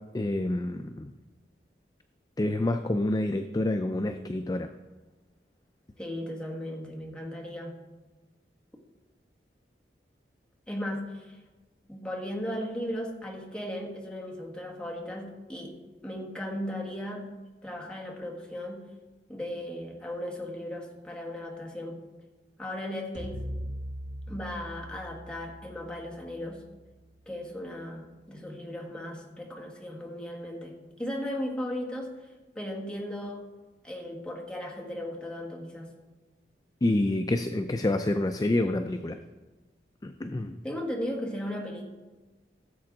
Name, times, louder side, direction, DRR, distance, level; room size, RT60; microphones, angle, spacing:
voice 1, 0.1-1.1 2.4-4.7 36.8-39.2 40.0-40.6, left 1 dB, 20° left, 7 dB, 0.4 m, -28 dB
voice 2, 6.0-7.8 10.7-11.4 11.9-17.3 17.6-18.9 19.3-22.1 22.6-23.4 24.3-26.6 27.2-33.5 33.8-35.9 40.6-41.8, left 1 dB, 5° left, -1 dB, 1.6 m, -36 dB
sound 1, 23.1-27.5, equal, 85° right, 1.8 m, -41 dB
16.0 x 7.5 x 3.9 m, 1.2 s
head